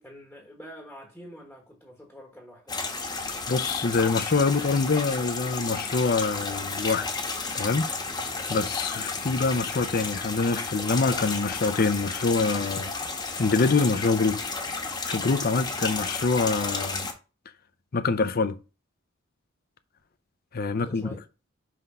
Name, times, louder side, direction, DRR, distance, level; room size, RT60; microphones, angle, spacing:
voice 1, 0.0-2.8 20.7-21.2, equal, 5° left, 1.2 m, -46 dB
sound 1, 2.7-17.1, left 4 dB, 20° left, 1.1 m, -32 dB
voice 2, 3.5-7.1 7.5-12.9 13.4-14.5 15.0-17.1 17.9-18.6 20.5-21.1, left 4 dB, 45° left, 0.6 m, -25 dB
5.9 x 3.6 x 5.5 m
head